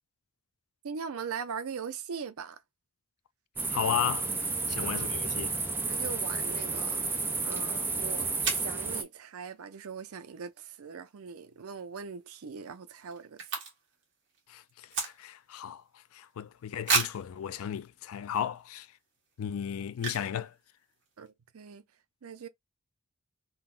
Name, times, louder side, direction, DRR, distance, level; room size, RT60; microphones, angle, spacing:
voice 1, 0.8-2.6 4.8-5.1 5.9-7.1 7.4-13.4 21.2-21.8 22.2-22.5, right 6 dB, 75° right, 0.5 m, -40 dB
sound 1, 3.6-9.0, right 3 dB, 10° right, 0.3 m, -31 dB
voice 2, 3.7-4.3 4.7-5.5 14.5-15.8 16.1-18.9 19.4-20.5, left 9 dB, 75° left, 0.3 m, -34 dB
sound 2, 8.4-8.8 11.7-12.0 12.3-12.4 12.5-14.0 14.3-15.5 16.0-16.1 16.8-17.3 18.0-18.1 18.6-18.8 19.9-20.4 20.7-20.8 20.9-21.3, right 4 dB, 55° right, 1.5 m, -32 dB
3.7 x 2.1 x 2.4 m
head